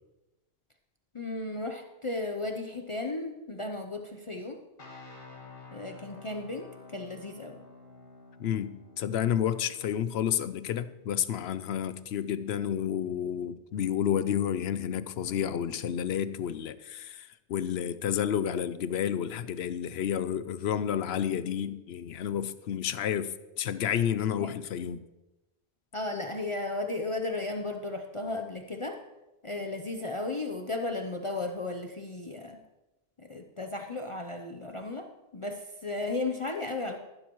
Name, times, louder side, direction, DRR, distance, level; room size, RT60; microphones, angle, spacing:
voice 1, 1.1-4.6 5.7-7.6 24.3-24.5 25.9-29.0 29.4-32.6 33.2-37.0, left 2 dB, 35° left, 0.7 m, -35 dB
sound 1, 4.8-13.0, left 3 dB, 50° left, 1.8 m, -52 dB
voice 2, 8.4-25.0, left 9 dB, 75° left, 0.8 m, -30 dB
15.0 x 11.5 x 3.1 m
omnidirectional pair, 1.1 m